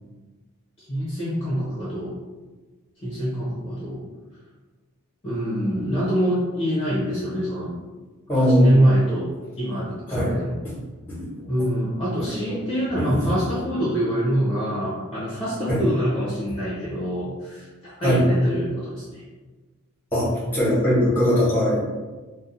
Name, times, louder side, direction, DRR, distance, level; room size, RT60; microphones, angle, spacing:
voice 1, 0.8-2.2 3.0-4.0 5.2-7.8 8.3-10.5 11.5-19.2, equal, 25° left, -9 dB, 0.7 m, -25 dB
voice 2, 8.3-8.8 10.1-10.3 10.6-10.7 11.1-11.3 12.2-12.6 13.0-13.2 15.7-15.8 18.0-18.2 20.1-21.8, equal, 10° left, -7 dB, 1.2 m, -21 dB
2.6 x 2.1 x 3.9 m, 1.3 s
head